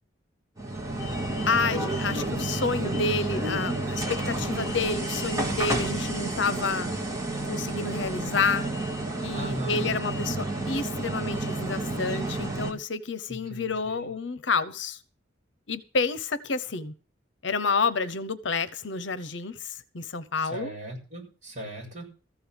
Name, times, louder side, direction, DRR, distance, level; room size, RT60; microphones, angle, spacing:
sound 1, 0.6-12.7, right 2 dB, 20° right, 2.1 m, -30 dB
voice 1, 1.5-7.0 7.4-8.7 9.2-15.0 15.7-16.9 17.4-20.7, left 4 dB, 65° left, 0.9 m, -29 dB
voice 2, 9.3-10.0 13.3-14.1 20.5-22.1, right 1 dB, 40° right, 7.0 m, -37 dB
14.5 x 5.5 x 8.8 m
head